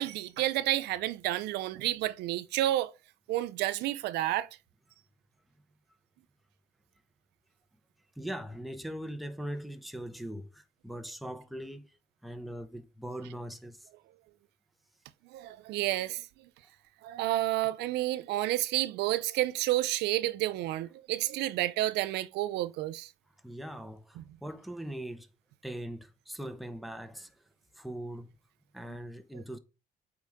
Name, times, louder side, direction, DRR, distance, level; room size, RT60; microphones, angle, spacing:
voice 1, 0.0-2.9 3.3-4.5 15.3-16.2 17.0-23.1 24.2-24.3, right 15 dB, 85° right, 0.5 m, -30 dB
voice 2, 8.2-11.9 12.2-13.8 23.4-25.3 25.6-27.3 27.8-28.4 28.7-29.6, right 1 dB, ahead, 0.9 m, -40 dB
8.2 x 4.9 x 3.5 m
cardioid pair, 110°, 17 cm